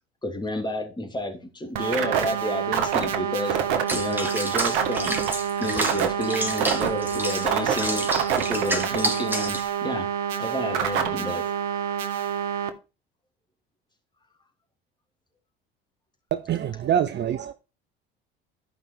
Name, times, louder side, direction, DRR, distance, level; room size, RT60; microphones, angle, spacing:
voice 1, 0.2-3.6 3.9-5.2 5.6-10.1 10.4-12.2, left 1 dB, 15° left, 2.9 m, -31 dB
sound 1, 1.7-12.7, right 8 dB, 70° right, 1.4 m, -26 dB
Water / Bathtub (filling or washing), 3.9-9.7, right 1 dB, 5° right, 2.1 m, -30 dB
voice 2, 16.3-17.5, right 10 dB, 35° right, 0.8 m, -25 dB
12.5 x 5.4 x 4.6 m
hypercardioid pair, 65°, 29 cm